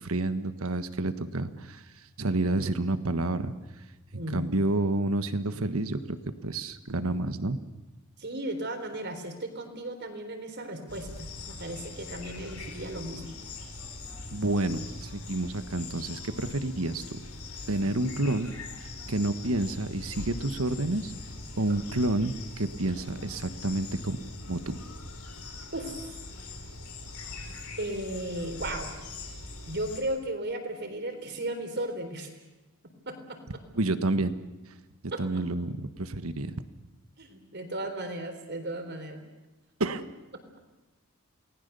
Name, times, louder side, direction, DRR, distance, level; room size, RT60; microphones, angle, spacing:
voice 1, 0.0-1.8 2.2-3.5 4.1-6.2 6.4-7.6 14.3-17.2 17.7-18.5 19.1-21.1 21.6-24.2 24.5-24.8 33.7-34.4 35.0-36.6 39.8-40.0, right 2 dB, 70° right, 11 dB, 1.4 m, -29 dB
voice 2, 4.1-4.4 8.2-13.3 21.7-21.8 25.7-26.0 27.8-28.9 29.7-32.3 33.1-33.4 37.2-39.2, right 1 dB, 50° right, 6 dB, 3.9 m, -35 dB
sound 1, 10.9-30.0, left 3 dB, 90° left, 5.5 m, -42 dB
29.5 x 19.5 x 6.9 m, 1.1 s
head